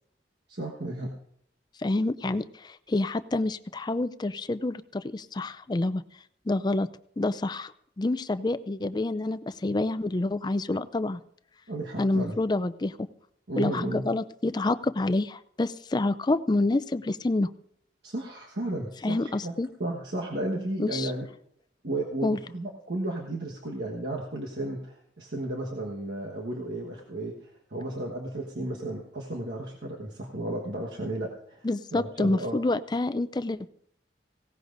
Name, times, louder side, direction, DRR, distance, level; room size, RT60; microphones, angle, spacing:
voice 1, 0.5-1.1 11.7-12.4 13.5-14.0 18.0-19.5 19.8-21.3 21.8-32.6, right 1 dB, 70° right, -2 dB, 1.4 m, -33 dB
voice 2, 1.8-6.0 6.5-6.9 7.2-7.7 8.0-11.2 12.0-13.1 13.6-17.5 19.0-19.7 20.8-21.1 22.2-22.4 31.6-33.7, left 2 dB, 25° left, 13 dB, 0.4 m, -28 dB
18.5 x 17.0 x 2.6 m, 0.71 s
head